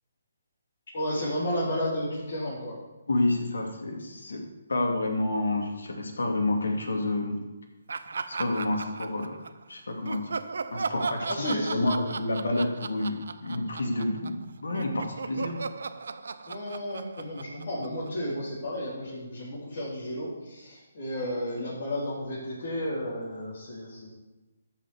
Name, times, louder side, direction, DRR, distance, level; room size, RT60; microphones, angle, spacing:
voice 1, 0.9-2.8 11.2-11.8 16.5-24.1, equal, 55° left, -8 dB, 4.0 m, -32 dB
voice 2, 3.1-4.4 4.7-7.4 8.3-9.4 9.7-10.3 10.7-11.4 11.7-15.6, left 2 dB, 80° left, 2 dB, 2.8 m, -29 dB
Laughter, 7.9-9.6 10.0-14.4 14.7-18.3, right 4 dB, 70° right, 0.8 m, -36 dB
13.5 x 6.0 x 7.2 m, 1.1 s
hypercardioid pair, 150°, 0 cm